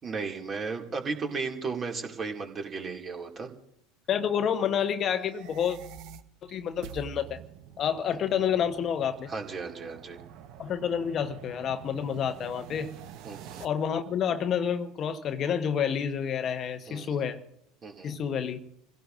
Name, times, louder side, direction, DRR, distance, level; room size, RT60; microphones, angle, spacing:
voice 1, 0.0-3.5 9.3-10.2 13.2-13.6 16.9-17.2 17.8-18.2, right 4 dB, 30° right, 2.4 m, -35 dB
voice 2, 4.1-5.8 6.4-7.4 7.8-9.3 10.6-12.9 13.6-17.4 18.0-18.6, left 8 dB, 40° left, 1.0 m, -29 dB
sound 1, 5.2-13.7, right 9 dB, 55° right, 0.9 m, -47 dB
27.0 x 17.0 x 2.6 m
figure-of-eight pair, 75°, 0 cm